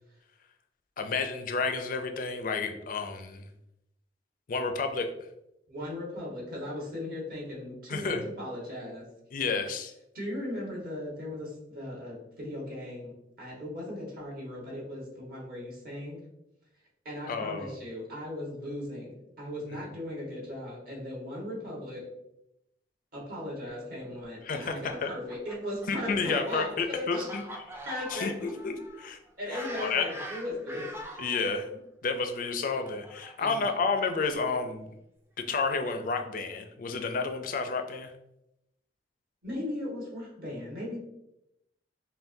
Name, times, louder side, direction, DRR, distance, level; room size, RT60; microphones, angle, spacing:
voice 1, 1.0-3.5 4.5-5.1 7.9-8.2 9.3-9.9 17.3-17.8 24.4-24.8 25.0-25.1 25.9-27.4 28.1-29.2 29.8-30.0 31.2-34.9 35.5-38.1, left 4 dB, 50° left, 6 dB, 0.4 m, -31 dB
voice 2, 5.7-9.0 10.1-16.2 17.0-22.0 23.1-27.2 27.8-28.3 29.4-30.9 33.4-33.7 39.4-41.0, left 1 dB, 55° right, -4 dB, 1.5 m, -37 dB
Fowl, 24.6-31.5 32.3-34.4, equal, 15° right, 0.4 m, -43 dB
5.6 x 2.2 x 2.6 m, 0.86 s
head